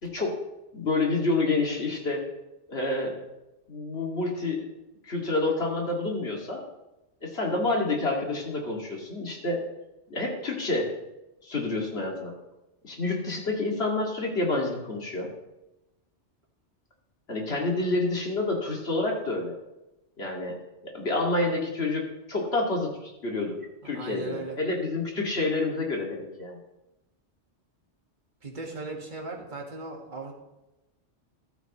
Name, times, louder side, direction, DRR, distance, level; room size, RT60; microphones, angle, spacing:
voice 1, 0.0-0.4 0.7-2.3 2.7-3.2 3.7-4.7 5.0-6.6 7.2-9.6 10.1-10.9 11.4-12.4 12.8-15.3 17.3-19.6 20.2-20.6 20.8-26.6, left 2 dB, 60° left, -1 dB, 2.5 m, -28 dB
voice 2, 23.8-24.6 28.4-30.3, right 3 dB, 45° right, -1 dB, 2.0 m, -37 dB
14.5 x 12.0 x 3.1 m, 0.98 s
omnidirectional pair, 1.2 m